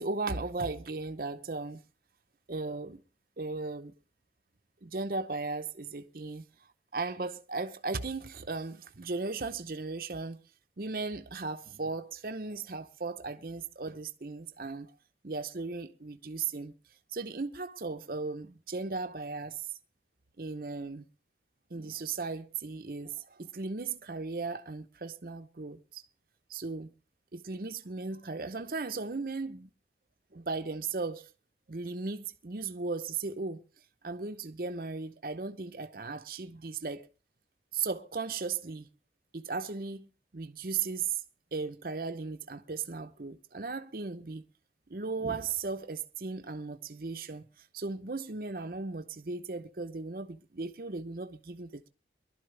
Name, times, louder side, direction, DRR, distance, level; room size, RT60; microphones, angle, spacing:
voice 1, 0.0-1.8 2.5-3.0 3.4-3.9 4.8-6.4 6.9-10.4 10.8-14.9 15.2-16.7 17.1-19.6 20.4-21.0 21.7-26.0 26.5-26.9 27.3-29.7 30.3-31.3 31.7-33.6 34.0-37.1 37.7-38.9 39.3-40.1 40.3-41.2 41.5-44.4 44.9-51.9, right 4 dB, 55° right, 0.8 m, -36 dB
22.5 x 12.0 x 3.3 m
head